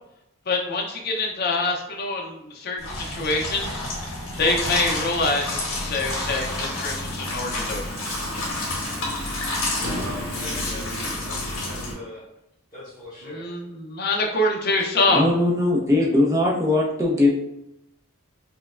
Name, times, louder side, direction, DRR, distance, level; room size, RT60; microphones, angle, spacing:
voice 1, 0.5-3.8 4.4-7.9 13.3-15.3, left 2 dB, 45° left, 0 dB, 0.5 m, -25 dB
sound 1, 2.8-11.9, left 2 dB, 75° left, 1.0 m, -29 dB
Sawing, 7.6-11.1, right 1 dB, 60° right, 0.5 m, -41 dB
voice 2, 9.7-12.2 12.7-13.4, left 1 dB, 20° left, -14 dB, 1.2 m, -40 dB
voice 3, 15.1-17.3, left 2 dB, 15° right, -3 dB, 0.6 m, -20 dB
4.4 x 2.1 x 2.3 m, 0.83 s
head